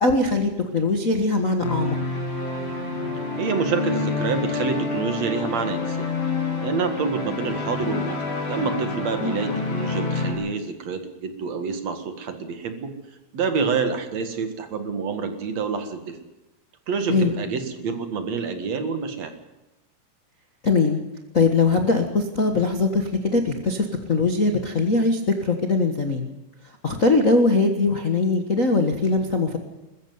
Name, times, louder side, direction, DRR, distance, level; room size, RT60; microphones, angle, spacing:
voice 1, 0.0-2.0 9.2-9.4 17.1-17.4 20.6-21.0 21.3-26.3 26.8-29.6, left 3 dB, 85° left, 3 dB, 0.7 m, -21 dB
sound 1, 1.6-10.3, left 4 dB, 65° left, 6.8 m, -28 dB
voice 2, 3.4-6.1 6.6-8.2 8.5-12.9 13.3-16.2 16.9-19.3, right 5 dB, 55° right, 7 dB, 2.7 m, -27 dB
21.5 x 14.5 x 9.5 m, 1.0 s
omnidirectional pair, 4.2 m